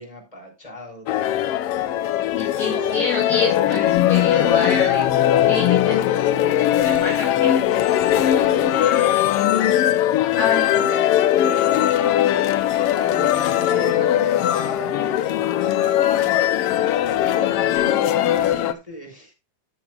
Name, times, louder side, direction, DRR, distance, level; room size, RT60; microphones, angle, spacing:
voice 1, 0.0-1.5 8.1-9.4 10.2-10.9 11.1-19.3, right 1 dB, 10° left, 1 dB, 5.0 m, -39 dB
sound 1, 1.1-18.7, left 12 dB, 70° left, 1.4 m, -19 dB
voice 2, 2.4-6.5 6.8-7.5 10.4-11.2, left 3 dB, 30° left, 0 dB, 2.6 m, -27 dB
13.5 x 9.3 x 2.4 m, 0.26 s
omnidirectional pair, 3.4 m